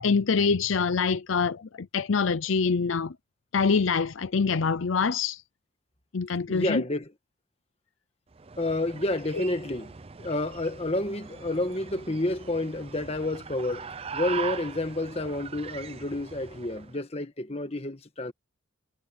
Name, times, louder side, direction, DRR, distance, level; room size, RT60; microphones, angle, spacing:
voice 1, 0.0-3.1 3.5-5.4 6.1-6.8, left 5 dB, 75° left, 0.6 m, -25 dB
voice 2, 6.5-7.1 8.6-18.3, left 1 dB, 30° left, 1.7 m, -30 dB
sound 1, 8.3-17.0, right 5 dB, 30° right, 0.5 m, -41 dB
head